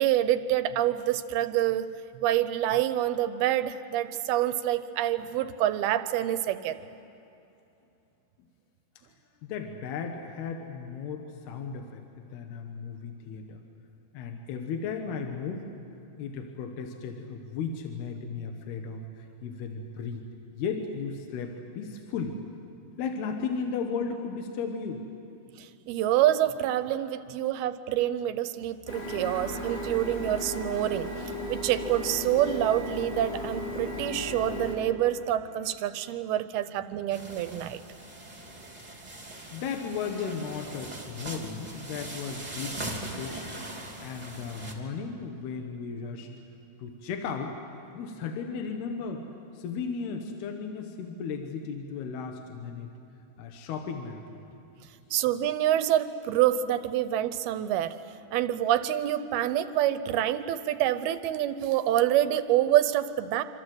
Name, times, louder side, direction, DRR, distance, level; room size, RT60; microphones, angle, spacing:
voice 1, 0.0-1.9 2.2-6.8 25.6-37.8 55.1-58.0 58.3-63.4, right 12 dB, 75° right, 12 dB, 2.6 m, -27 dB
voice 2, 9.4-12.0 12.3-13.6 14.1-15.7 16.2-22.4 23.0-25.1 39.5-43.6 44.0-46.3 46.8-47.6 47.9-49.3 49.5-52.9 53.4-54.4, left 5 dB, 75° left, 4 dB, 3.3 m, -35 dB
Printer, 28.9-34.8, left 1 dB, 50° left, 6.1 m, -35 dB
sound 1, 37.1-44.7, right 2 dB, 10° right, 2.4 m, -41 dB
26.5 x 26.0 x 7.9 m, 2.8 s
omnidirectional pair, 4.7 m